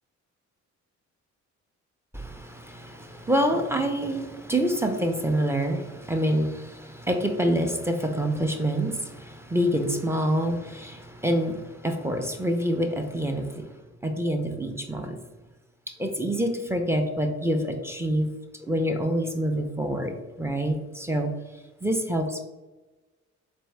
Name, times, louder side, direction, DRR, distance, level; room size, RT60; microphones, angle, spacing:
voice 1, 2.1-13.7 14.0-15.2 15.9-18.3 18.6-21.3 21.8-22.4, right 1 dB, 10° right, 5 dB, 0.4 m, -27 dB
3.5 x 3.4 x 3.2 m, 1.2 s
cardioid pair, 90°, 30 cm